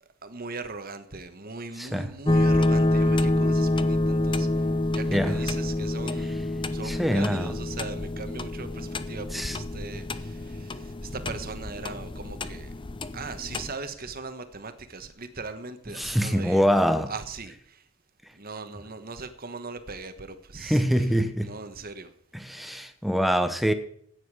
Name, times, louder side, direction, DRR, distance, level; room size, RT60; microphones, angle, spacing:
voice 1, 0.0-12.7 13.1-16.7 17.1-17.9 18.3-20.8 21.4-22.1, right 3 dB, 40° right, 1.3 m, -39 dB
sound 1, 2.3-13.7, left 1 dB, 20° left, 0.6 m, -27 dB
voice 2, 6.8-7.6 9.3-9.6 16.0-17.1 20.6-21.5 22.3-23.7, equal, ahead, 1.0 m, -24 dB
14.5 x 9.6 x 4.9 m
head